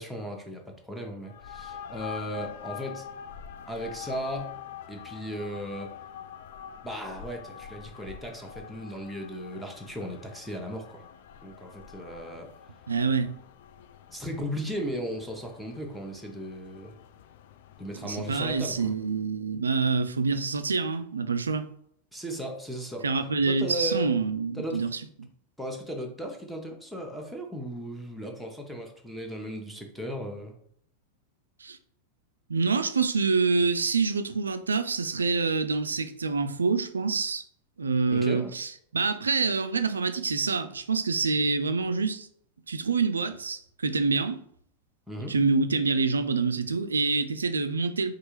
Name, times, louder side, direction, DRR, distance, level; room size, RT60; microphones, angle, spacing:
voice 1, 0.0-3.0 3.7-4.5 4.9-5.9 6.8-11.0 11.4-12.5 14.1-16.9 17.8-18.9 22.1-23.1 23.5-24.2 24.5-24.9 25.6-30.6 38.1-38.5 45.1-45.3, equal, ahead, 0.8 m, -36 dB
sound 1, 1.2-19.1, left 8 dB, 55° left, 0.3 m, -45 dB
voice 2, 12.9-13.3 18.0-21.7 23.0-25.0 31.6-31.8 32.5-37.4 37.8-42.3 42.7-44.4 45.3-48.2, right 4 dB, 75° right, 0.3 m, -26 dB
4.5 x 2.4 x 3.0 m
figure-of-eight pair, 90°, 0 cm